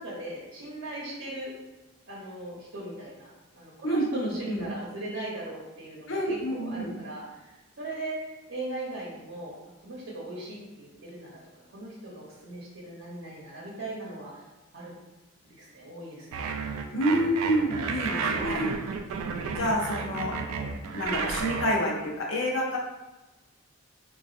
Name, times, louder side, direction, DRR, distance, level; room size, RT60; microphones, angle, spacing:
voice 1, 0.0-1.5 2.1-9.5 9.8-11.4 11.7-14.4 14.7-14.9 15.4-16.5, right 1 dB, 70° right, -6 dB, 0.8 m, -39 dB
voice 2, 3.8-4.6 6.1-6.9 16.9-18.7 19.6-20.3 20.9-22.8, equal, 65° left, 0 dB, 0.6 m, -28 dB
sound 1, 16.3-21.8, right 5 dB, 90° right, 0.3 m, -32 dB
3.9 x 2.3 x 2.4 m, 1.1 s
head